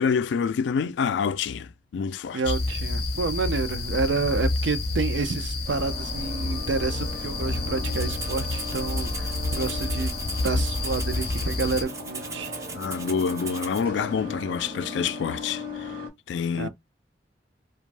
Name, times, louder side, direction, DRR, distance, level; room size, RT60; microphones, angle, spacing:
voice 1, 0.0-2.5 12.7-15.9 16.3-16.7, left 6 dB, 80° left, 0.3 m, -27 dB
voice 2, 2.3-10.1 10.4-12.5 16.6-16.7, right 4 dB, 80° right, 0.5 m, -29 dB
sound 1, 2.4-11.8, left 2 dB, 55° left, 0.7 m, -29 dB
sound 2, 5.6-16.1, left 1 dB, 50° right, 0.8 m, -38 dB
Rattle (instrument), 7.8-13.8, right 4 dB, 15° right, 0.3 m, -39 dB
2.5 x 2.2 x 3.2 m
head